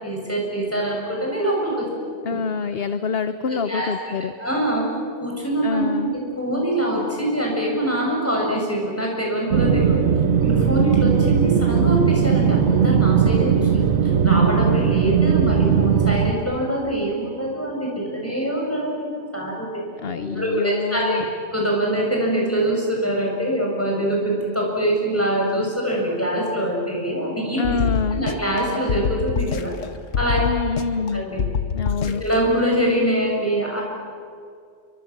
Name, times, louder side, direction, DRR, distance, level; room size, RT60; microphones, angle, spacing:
voice 1, 0.0-1.9 3.5-3.9 4.4-4.8 5.2-10.1 10.4-13.8 14.2-19.7 20.2-21.2 21.5-27.8 28.1-29.7 30.2-30.4 31.1-31.4 32.2-33.8, right 1 dB, 10° left, -2 dB, 7.7 m, -24 dB
voice 2, 2.2-4.3 5.6-6.1 20.0-21.2 27.6-28.3 30.4-31.2 31.7-32.2, left 5 dB, 55° left, 11 dB, 1.1 m, -26 dB
sound 1, 9.5-16.3, right 7 dB, 90° right, 1.6 m, -18 dB
sound 2, 27.6-28.6 28.9-29.9 30.1-31.1 31.4-32.4, left 7 dB, 75° left, 1.4 m, -25 dB
29.5 x 24.0 x 7.5 m, 2.2 s
omnidirectional pair, 1.3 m